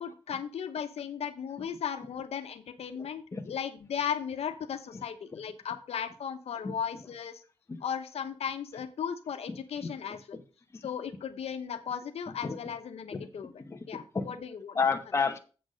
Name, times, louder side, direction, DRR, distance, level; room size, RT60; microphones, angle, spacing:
voice 1, 0.0-7.4 7.8-10.4 10.8-13.5 13.9-14.8, left 8 dB, 80° left, 8 dB, 1.0 m, -36 dB
voice 2, 3.0-3.5 6.6-6.7 7.7-7.8 9.5-10.0 10.3-10.4 12.3-12.6 13.1-13.3 13.7-14.3 14.7-15.4, left 5 dB, 25° left, 5 dB, 0.9 m, -32 dB
7.9 x 6.0 x 6.3 m, 0.36 s
wide cardioid pair, 175°, 10 cm